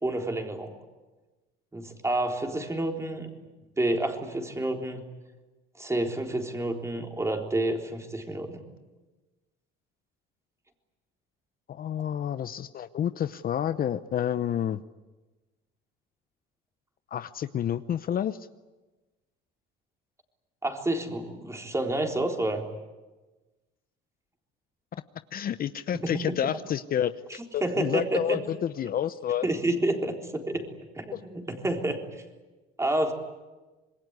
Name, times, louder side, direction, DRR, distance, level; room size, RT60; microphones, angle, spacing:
voice 1, 0.0-0.8 1.7-3.3 3.8-5.0 5.8-8.6 20.6-22.6 25.9-26.3 27.6-28.4 29.4-30.7 31.0-32.0 32.8-33.1, right 1 dB, 15° right, 3 dB, 3.8 m, -29 dB
voice 2, 11.7-14.8 17.1-18.4 25.3-27.1 27.5-29.5 31.1-31.2, left 10 dB, 45° left, 12 dB, 0.8 m, -29 dB
26.5 x 21.5 x 9.6 m, 1.2 s
cardioid pair, 115°, 21 cm